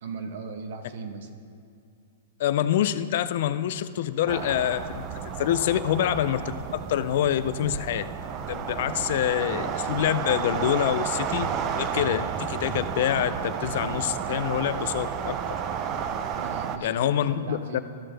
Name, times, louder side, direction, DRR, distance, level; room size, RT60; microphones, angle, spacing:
voice 1, 0.0-1.3 16.3-17.8, right 5 dB, 60° right, 6 dB, 1.0 m, -38 dB
voice 2, 2.4-5.1 5.4-8.1 8.5-15.6 16.8-17.8, left 11 dB, 55° left, 13 dB, 0.3 m, -26 dB
sound 1, 4.3-16.8, right 7 dB, 25° right, 0.4 m, -31 dB
14.0 x 5.7 x 3.3 m, 2.4 s
hypercardioid pair, 160°, 0 cm